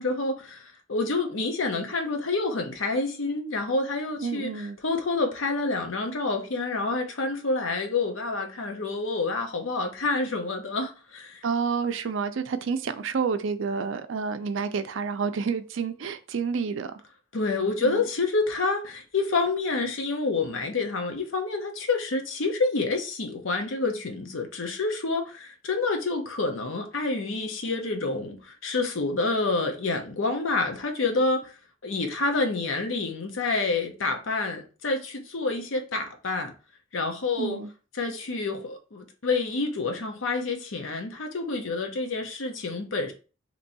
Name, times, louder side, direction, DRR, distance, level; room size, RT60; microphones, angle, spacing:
voice 1, 0.0-11.4 17.3-31.5 31.8-36.5 36.9-37.6 38.0-43.1, left 3 dB, 75° left, 0.8 m, -28 dB
voice 2, 4.2-4.8 11.4-16.9 17.8-18.0 37.4-37.7, right 5 dB, 65° right, 0.4 m, -29 dB
3.0 x 2.6 x 4.0 m
head